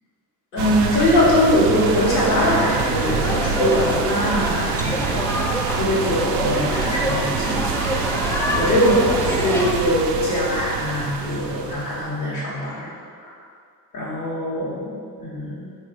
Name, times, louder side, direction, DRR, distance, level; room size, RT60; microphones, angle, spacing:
voice 1, 0.5-7.7 8.2-12.9 13.2-13.4 13.9-15.8, left 1 dB, 90° left, -8 dB, 1.2 m, -22 dB
sound 1, 0.6-12.1, right 6 dB, 55° right, 0.5 m, -26 dB
sound 2, 1.8-9.7, left 1 dB, 5° left, 0.4 m, -27 dB
3.8 x 2.6 x 4.7 m, 2.1 s
hypercardioid pair, 45°, 49 cm